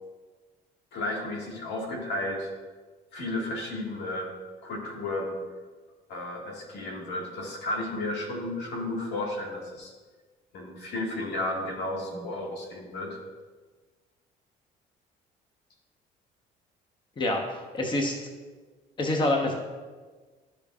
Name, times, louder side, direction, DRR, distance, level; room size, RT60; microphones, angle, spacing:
voice 1, 0.9-2.5 3.1-4.3 4.6-5.4 6.1-9.9 10.5-13.2, left 1 dB, 85° left, -1 dB, 1.8 m, -33 dB
voice 2, 17.7-18.1 19.0-19.5, left 1 dB, 30° left, 1 dB, 1.1 m, -25 dB
13.0 x 5.2 x 2.4 m, 1.4 s
cardioid pair, 110°, 17 cm